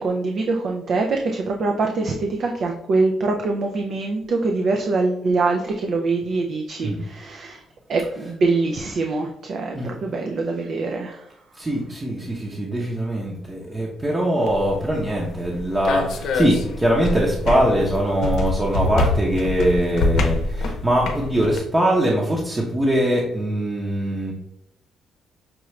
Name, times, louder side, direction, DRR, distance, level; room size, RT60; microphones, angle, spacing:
voice 1, 0.0-7.6 7.9-11.2, right 3 dB, 60° right, 2 dB, 0.5 m, -24 dB
voice 2, 11.6-24.3, right 1 dB, 20° right, -3 dB, 0.9 m, -22 dB
sound 1, 14.4-21.6, left 2 dB, 75° left, 0.6 m, -25 dB
5.9 x 2.4 x 3.2 m, 0.78 s
cardioid pair, 100°, 0 cm